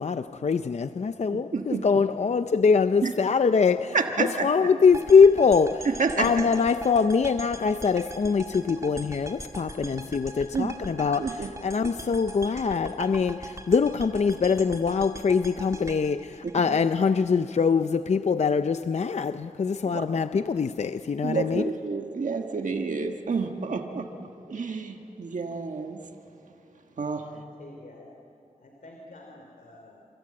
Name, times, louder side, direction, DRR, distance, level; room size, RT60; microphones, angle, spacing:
voice 1, 0.0-5.9 6.2-11.3 11.6-21.7, left 5 dB, 55° left, 0.5 m, -23 dB
voice 2, 1.3-1.9 3.0-3.1 3.9-4.5 5.8-6.3 10.5-10.8 11.2-11.5 16.4-16.8 19.9-20.1 21.2-24.1 24.5-26.0 27.0-27.4, right 4 dB, 70° right, 1.5 m, -29 dB
sound 1, 4.9-17.1, right 1 dB, 25° right, 2.1 m, -41 dB
voice 3, 27.2-28.1 28.6-30.0, left 2 dB, 80° left, 2.9 m, -49 dB
27.0 x 25.0 x 8.7 m
wide cardioid pair, 110°, 13 cm